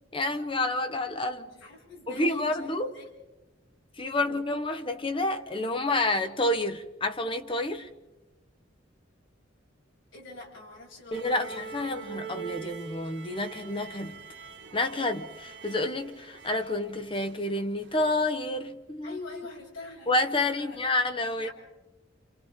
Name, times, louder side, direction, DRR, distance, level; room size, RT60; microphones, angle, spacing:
voice 1, 0.1-1.5 2.1-2.9 4.0-7.9 11.1-14.2 14.7-19.1 20.1-21.5, left 2 dB, 25° left, 1.2 m, -29 dB
voice 2, 1.5-3.1 4.2-4.4 10.1-11.6 19.0-20.8 21.2-21.5, left 3 dB, 85° left, 7.0 m, -45 dB
sound 1, 11.1-17.5 17.8-18.1, right 5 dB, 65° right, 2.0 m, -43 dB
29.5 x 27.0 x 3.7 m
head